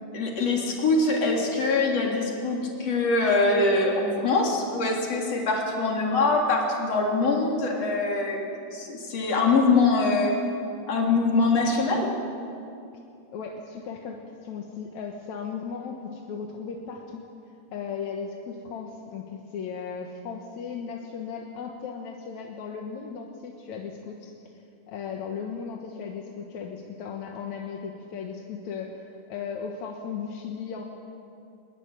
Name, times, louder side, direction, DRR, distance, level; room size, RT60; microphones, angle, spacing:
voice 1, 0.1-8.4 8.7-10.3 10.9-12.1, left 3 dB, 40° left, 0 dB, 4.3 m, -23 dB
voice 2, 13.3-17.2 17.7-24.3 24.9-30.8, left 6 dB, 60° left, 1 dB, 2.2 m, -36 dB
22.5 x 21.0 x 9.1 m, 2.6 s
omnidirectional pair, 4.7 m